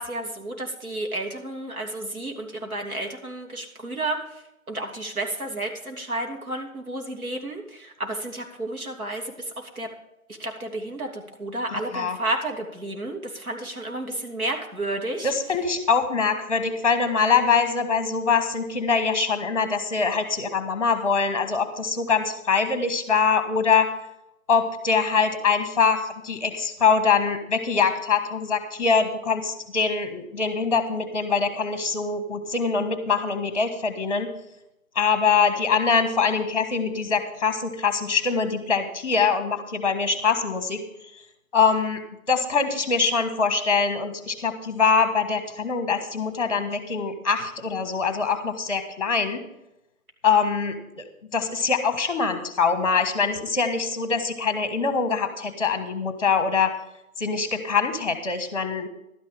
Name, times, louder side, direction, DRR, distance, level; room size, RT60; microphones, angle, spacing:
voice 1, 0.0-4.2 4.7-9.9 10.4-15.3, right 2 dB, 80° right, 1 dB, 3.2 m, -31 dB
voice 2, 15.2-23.9 24.5-34.3 34.9-41.2 41.5-42.0 42.3-49.4 50.2-51.0 51.3-56.7 57.2-58.9, left 5 dB, 25° left, 8 dB, 1.5 m, -23 dB
12.0 x 10.5 x 5.0 m, 0.86 s
figure-of-eight pair, 160°, 43 cm